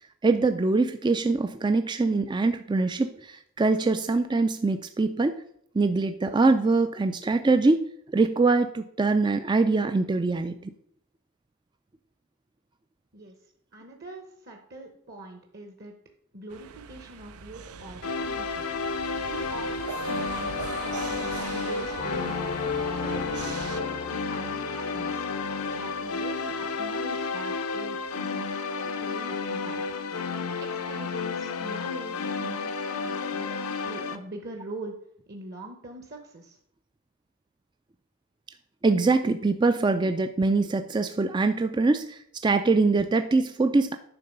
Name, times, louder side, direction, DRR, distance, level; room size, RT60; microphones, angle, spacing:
voice 1, 0.2-5.4 5.7-7.9 8.1-10.7 38.8-43.9, right 3 dB, 20° right, 9 dB, 0.3 m, -23 dB
voice 2, 13.7-15.9 16.3-18.6 19.3-22.4 23.0-25.3 25.7-28.5 28.8-29.8 30.6-34.9 35.3-36.6, right 2 dB, 45° right, 3 dB, 1.0 m, -43 dB
sound 1, 16.5-23.8, right 5 dB, 90° right, 0.6 m, -39 dB
sound 2, 18.0-34.2, left 4 dB, 85° left, 0.8 m, -31 dB
sound 3, 22.0-27.9, left 4 dB, 35° left, 0.5 m, -38 dB
10.5 x 3.8 x 6.6 m, 0.69 s
head